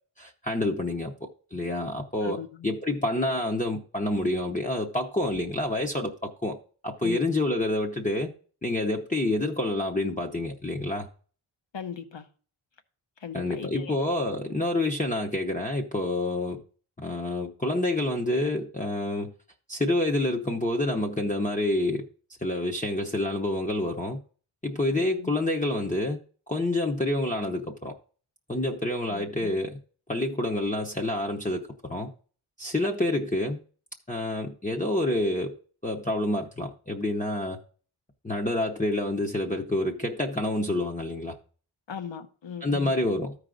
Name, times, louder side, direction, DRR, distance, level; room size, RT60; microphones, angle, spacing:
voice 1, 0.2-6.6 6.8-8.3 8.6-11.1 13.3-16.6 17.0-19.3 19.7-22.1 22.4-24.2 24.6-26.2 26.5-27.9 28.5-29.8 30.1-32.1 32.6-33.6 34.1-35.5 35.8-37.6 38.2-41.4 42.6-43.4, left 1 dB, 15° left, 0.8 m, -28 dB
voice 2, 2.2-2.7 7.0-7.2 11.7-12.3 13.2-14.0 25.0-25.3 29.1-29.5 41.9-42.9, left 7 dB, 60° left, 1.0 m, -39 dB
13.5 x 4.8 x 3.8 m
wide cardioid pair, 85°, 49 cm